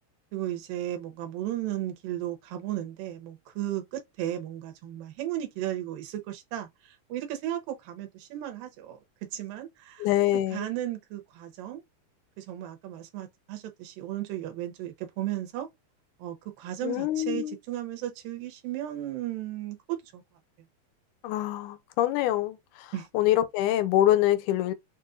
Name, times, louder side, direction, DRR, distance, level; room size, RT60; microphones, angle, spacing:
voice 1, 0.3-10.1 10.5-11.8 12.4-15.7 16.2-20.2 22.9-23.1, right 13 dB, 75° right, 2.6 m, -35 dB
voice 2, 10.0-10.7 16.8-17.5 21.2-24.7, left 13 dB, 80° left, 1.9 m, -25 dB
6.2 x 2.5 x 2.5 m
omnidirectional pair, 4.1 m